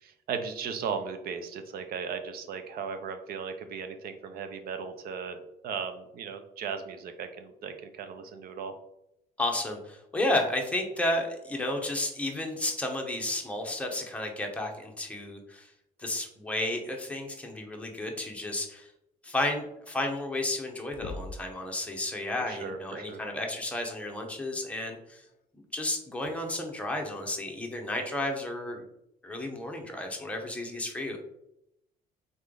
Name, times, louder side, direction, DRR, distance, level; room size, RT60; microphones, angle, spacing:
voice 1, 0.0-5.4 5.6-8.7 22.5-23.2, right 6 dB, 65° right, 8 dB, 0.6 m, -37 dB
voice 2, 9.4-15.7 16.0-18.9 19.2-25.2 25.7-28.9 29.2-31.2, left 1 dB, 10° left, 1 dB, 0.9 m, -32 dB
sound 1, 20.9-21.6 23.3-23.4 25.2-25.4 26.2-26.3, left 3 dB, 60° left, 0.5 m, -41 dB
3.8 x 3.2 x 3.8 m, 0.82 s
cardioid pair, 110°, 17 cm